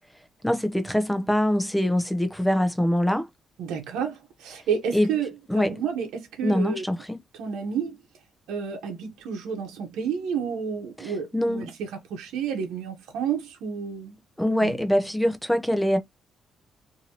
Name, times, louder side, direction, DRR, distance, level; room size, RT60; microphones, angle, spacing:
voice 1, 0.4-3.3 4.9-5.1 5.5-5.7 6.4-7.2 11.0-11.7 14.4-16.0, equal, 5° left, 0.6 m, -24 dB
voice 2, 3.6-6.9 7.3-8.0 8.5-14.2 14.6-14.8, right 7 dB, 90° right, 0.8 m, -30 dB
2.7 x 2.7 x 2.8 m
cardioid pair, 90°, 0 cm